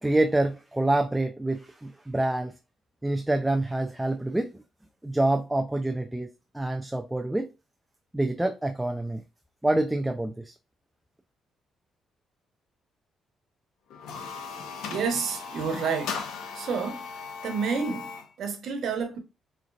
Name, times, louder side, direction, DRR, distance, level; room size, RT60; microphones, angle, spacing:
voice 1, 0.0-2.5 3.0-4.6 5.0-6.3 6.5-7.5 8.1-9.2 9.6-10.5, right 1 dB, 10° right, 0.4 m, -26 dB
sound 1, 13.9-18.3, left 5 dB, 85° left, 0.9 m, -37 dB
voice 2, 14.9-16.2 16.5-17.1 17.4-19.2, right 5 dB, 70° right, 1.1 m, -29 dB
4.9 x 3.2 x 2.4 m
cardioid pair, 90°, 0 cm